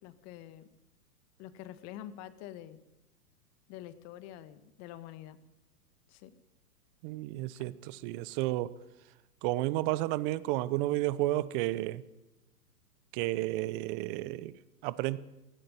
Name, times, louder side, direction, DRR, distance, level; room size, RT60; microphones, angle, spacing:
voice 1, 0.0-0.7 1.4-2.8 3.7-5.4 6.1-6.3, left 12 dB, 35° left, 13 dB, 1.6 m, -46 dB
voice 2, 7.0-8.7 9.4-12.0 13.1-14.6 14.8-15.2, right 17 dB, 35° right, 19 dB, 0.8 m, -32 dB
17.0 x 16.5 x 9.4 m, 0.98 s
hypercardioid pair, 125°, 47 cm